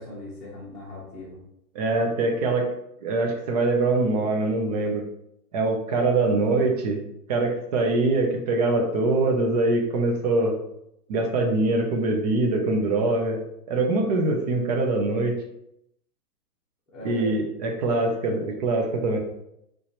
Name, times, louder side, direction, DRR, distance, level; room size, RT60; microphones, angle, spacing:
voice 1, 0.0-1.4 16.9-17.4 18.3-18.6, left 1 dB, ahead, -9 dB, 0.8 m, -39 dB
voice 2, 1.7-2.7 3.0-5.0 5.5-7.0 7.3-10.6 11.1-13.4 13.7-15.3 17.0-19.2, right 2 dB, 25° right, 3 dB, 0.5 m, -23 dB
4.2 x 3.2 x 2.9 m, 0.79 s
hypercardioid pair, 140°, 49 cm